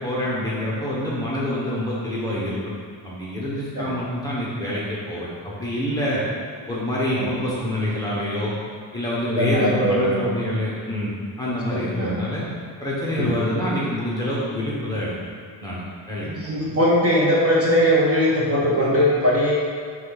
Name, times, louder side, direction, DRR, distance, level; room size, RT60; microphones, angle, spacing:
voice 1, 0.0-2.8 3.0-6.2 6.7-8.5 8.9-11.1 11.4-12.4 12.8-15.1 15.6-16.3, left 1 dB, 10° left, -8 dB, 1.3 m, -26 dB
voice 2, 9.2-10.2 11.7-12.2 13.2-13.4 16.2-19.5, equal, 30° right, -5 dB, 1.6 m, -20 dB
10.5 x 3.6 x 4.1 m, 2.1 s
cardioid pair, 150°, 46 cm